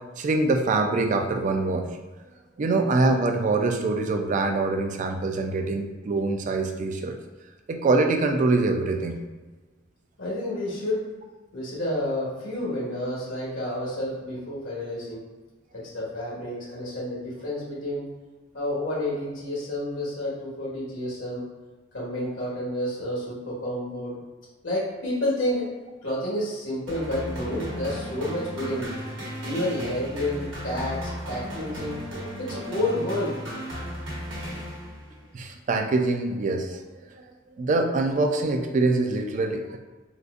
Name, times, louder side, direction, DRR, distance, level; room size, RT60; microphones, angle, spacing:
voice 1, 0.2-2.1 2.6-7.1 7.7-9.2 35.3-36.8 37.1-37.2 37.6-39.8, right 3 dB, 40° right, 5 dB, 0.3 m, -24 dB
voice 2, 10.2-11.0 11.5-15.2 15.7-18.1 18.5-21.4 21.9-24.2 24.6-25.7 26.0-28.9 29.4-32.0 32.4-33.4, left 1 dB, 75° left, -5 dB, 1.1 m, -30 dB
sound 1, 26.9-35.2, equal, 75° right, 1.0 m, -35 dB
3.9 x 2.5 x 2.4 m, 1.2 s
head